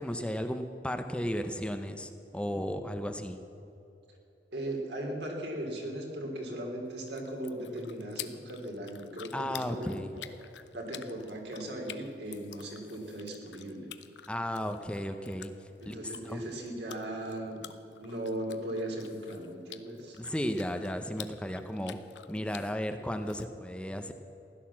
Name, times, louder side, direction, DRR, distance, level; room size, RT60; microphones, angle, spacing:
voice 1, 0.0-3.4 9.3-10.1 14.3-15.5 15.8-16.5 20.2-22.0 22.3-24.1, equal, 5° left, 7 dB, 0.7 m, -34 dB
voice 2, 4.5-9.9 10.7-13.9 15.8-17.6 18.0-20.2, right 1 dB, 70° right, 1 dB, 3.3 m, -38 dB
sound 1, 6.8-23.4, left 11 dB, 90° left, 0.8 m, -50 dB
16.0 x 11.5 x 7.3 m, 2.9 s
head